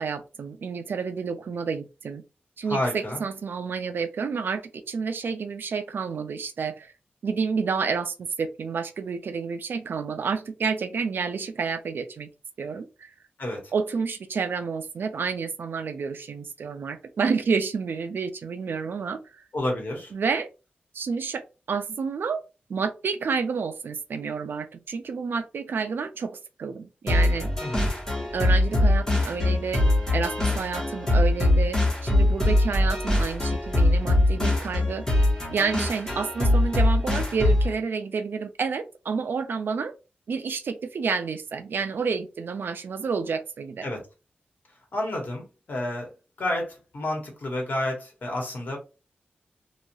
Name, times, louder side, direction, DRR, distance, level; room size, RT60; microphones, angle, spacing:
voice 1, 0.0-2.2 2.6-6.9 7.2-12.3 12.6-13.1 13.7-19.4 20.1-20.5 20.9-21.4 21.7-22.4 22.7-27.5 28.3-29.8 30.1-35.1 35.5-39.9 40.3-43.9, right 5 dB, 70° right, 9 dB, 0.3 m, -29 dB
voice 2, 2.7-3.2 13.4-13.6 19.5-20.1 27.6-27.9 43.8-44.0 44.9-46.1 46.4-48.8, left 1 dB, 60° left, 0 dB, 1.1 m, -30 dB
sound 1, 27.1-37.7, left 1 dB, 15° left, 1.0 m, -22 dB
3.0 x 2.3 x 2.6 m, 0.31 s
wide cardioid pair, 170°, 4 cm